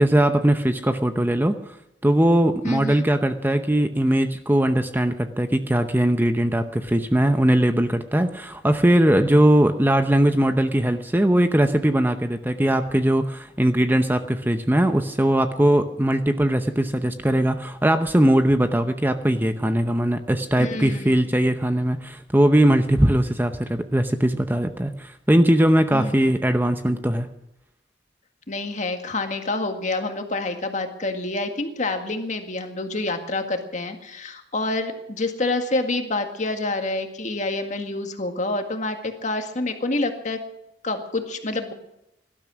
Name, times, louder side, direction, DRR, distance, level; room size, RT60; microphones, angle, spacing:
voice 1, 0.0-1.5 2.0-27.3, right 1 dB, 10° right, 8 dB, 0.7 m, -20 dB
voice 2, 2.6-3.0 20.6-21.2 25.9-26.1 28.5-40.4 40.8-41.7, left 2 dB, 40° left, 5 dB, 1.9 m, -27 dB
18.0 x 12.5 x 6.2 m, 0.85 s
head